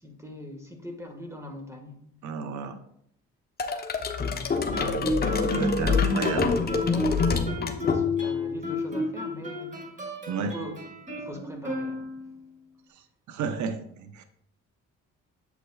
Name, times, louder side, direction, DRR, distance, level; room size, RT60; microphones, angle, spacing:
voice 1, 0.0-2.0 5.9-9.8 10.4-10.8 11.2-12.3, left 1 dB, 10° right, 2 dB, 1.5 m, -42 dB
voice 2, 2.2-2.8 5.4-6.5 10.3-10.6 13.3-14.2, right 5 dB, 70° right, 8 dB, 0.8 m, -32 dB
sound 1, 3.6-8.4, left 4 dB, 30° left, 0.9 m, -26 dB
Guitar, 4.7-12.4, left 3 dB, 25° right, 2.1 m, -32 dB
8.3 x 7.5 x 2.3 m, 0.67 s
cardioid pair, 90°, 30 cm